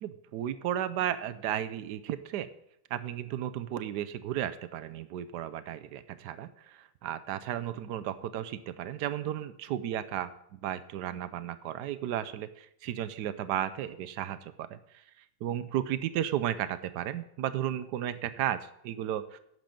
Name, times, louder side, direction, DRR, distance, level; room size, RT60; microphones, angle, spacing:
voice 1, 0.0-2.5 2.9-15.0 15.4-19.4, right 11 dB, 75° right, 13 dB, 1.0 m, -34 dB
11.5 x 7.6 x 5.2 m, 0.75 s
omnidirectional pair, 2.3 m